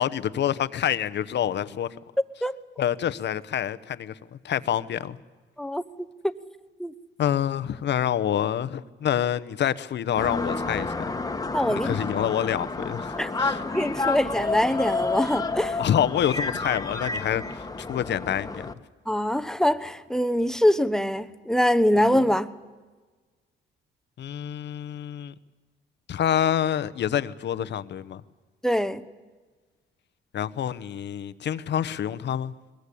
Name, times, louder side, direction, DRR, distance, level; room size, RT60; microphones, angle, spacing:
voice 1, 0.0-1.9 2.8-4.1 4.4-5.2 7.2-10.9 11.7-13.6 15.8-18.7 24.2-25.3 26.1-28.2 30.3-32.5, left 10 dB, 60° left, 1.0 m, -27 dB
sound 1, 10.2-18.7, left 3 dB, 20° left, 1.5 m, -30 dB
voice 2, 11.5-12.0 13.2-13.3 13.6-15.8 19.1-22.5 28.6-29.0, equal, 5° left, 1.0 m, -23 dB
21.5 x 21.0 x 8.5 m
cardioid pair, 90°, 20 cm